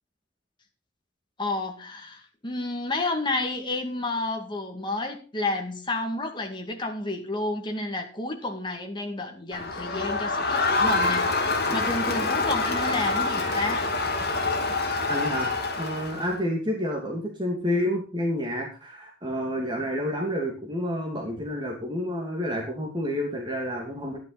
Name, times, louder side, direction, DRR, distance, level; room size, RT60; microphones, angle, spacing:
voice 1, 1.4-13.9, left 2 dB, 25° left, 2.2 m, -31 dB
Crowd, 9.5-16.3, left 3 dB, 55° left, 3.0 m, -26 dB
voice 2, 15.1-24.2, equal, 25° right, 2.4 m, -29 dB
12.0 x 10.5 x 4.1 m
head